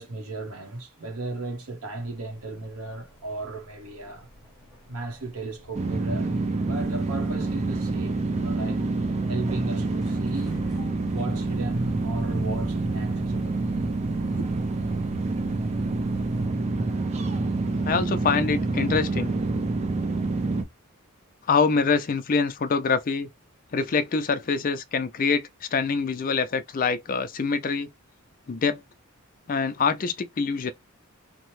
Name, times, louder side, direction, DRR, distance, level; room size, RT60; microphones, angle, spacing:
voice 1, 0.0-4.3 4.9-6.4 6.6-8.8 9.3-13.6 14.2-14.5, right 2 dB, 75° right, 0.9 m, -35 dB
sound 1, 2.0-16.5, left 1 dB, ahead, 1.1 m, -46 dB
sound 2, 5.7-20.6, right 3 dB, 30° right, 0.4 m, -27 dB
voice 2, 17.8-19.3 21.5-23.3 23.7-27.9 28.5-28.8 29.5-30.7, left 5 dB, 40° left, 0.4 m, -25 dB
2.9 x 2.0 x 3.0 m
head